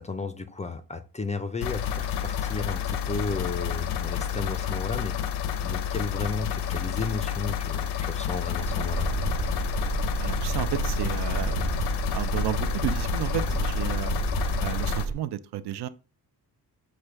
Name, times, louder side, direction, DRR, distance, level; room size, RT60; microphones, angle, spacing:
voice 1, 0.0-5.3 5.6-9.1, left 4 dB, 20° left, 0.3 m, -33 dB
sound 1, 1.6-15.1, left 9 dB, 75° left, 0.6 m, -30 dB
sound 2, 8.6-15.1, right 4 dB, 50° right, 1.2 m, -30 dB
voice 2, 10.2-14.2 14.6-15.9, right 11 dB, 75° right, 0.5 m, -32 dB
5.0 x 2.2 x 4.4 m
cardioid pair, 105°, 40 cm